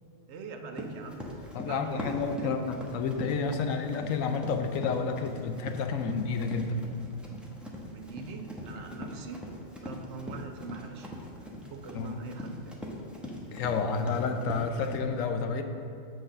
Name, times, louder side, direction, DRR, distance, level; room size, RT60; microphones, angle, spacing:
voice 1, 0.3-2.5 7.9-9.4 9.8-11.1 11.7-12.7 13.4-13.5, right 4 dB, 65° right, 5 dB, 0.9 m, -43 dB
Run, 0.7-15.0, left 1 dB, ahead, 0.7 m, -42 dB
voice 2, 1.5-6.8 11.9-12.2 13.5-15.6, left 4 dB, 80° left, 6 dB, 1.0 m, -30 dB
7.9 x 3.9 x 6.5 m, 2.4 s
omnidirectional pair, 1.4 m